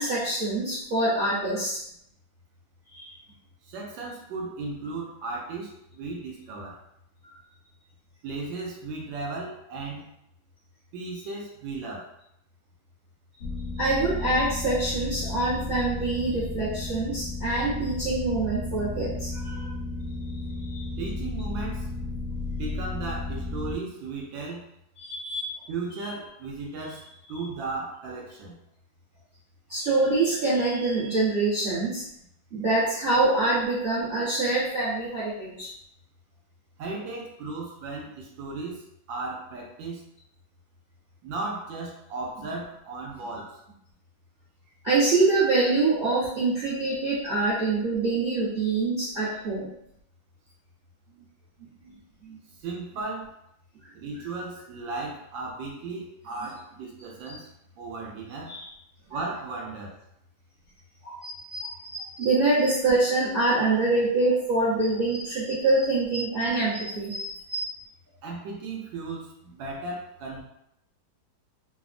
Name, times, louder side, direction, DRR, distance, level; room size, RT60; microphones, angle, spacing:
voice 1, 0.0-1.8 2.9-3.2 13.7-19.7 20.3-20.9 25.0-25.5 25.9-26.1 29.7-32.0 32.5-35.7 44.8-49.7 51.6-51.7 52.2-52.4 57.3-57.4 58.5-58.6 59.1-59.2 61.0-67.7, right 2 dB, 45° right, -10 dB, 0.7 m, -25 dB
voice 2, 3.7-6.8 8.2-10.1 10.9-12.1 21.0-21.9 22.6-24.6 25.7-27.0 27.3-28.6 36.8-38.8 39.1-40.0 41.2-43.5 52.6-53.3 53.9-57.5 57.8-58.5 59.1-59.9 68.2-70.4, right 3 dB, 80° right, -2 dB, 1.3 m, -35 dB
sound 1, 13.4-23.8, left 2 dB, 75° left, 0.9 m, -33 dB
3.3 x 2.0 x 2.4 m, 0.76 s
omnidirectional pair, 2.0 m